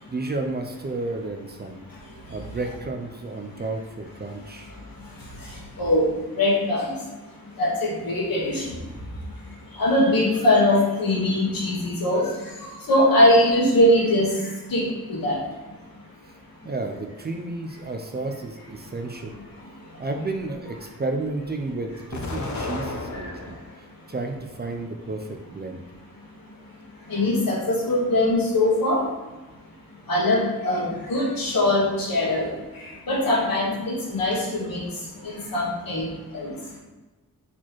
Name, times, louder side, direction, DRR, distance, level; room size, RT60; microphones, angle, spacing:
voice 1, 0.1-1.8 2.3-4.7 16.6-19.4 20.0-23.6 24.1-25.8, right 2 dB, 30° right, 4 dB, 0.4 m, -32 dB
voice 2, 5.8-6.1 6.4-6.9 7.6-8.6 9.8-12.3 12.9-14.3 14.7-14.8 15.1-15.4 27.1-29.0 30.1-32.5 33.1-34.8 35.2-36.1 36.3-36.5, left 1 dB, 75° left, -4 dB, 1.5 m, -21 dB
Explosion, 22.1-23.8 24.3-25.2, left 2 dB, 55° left, 0.6 m, -33 dB
4.2 x 4.2 x 3.0 m, 1.2 s
wide cardioid pair, 130°, 35 cm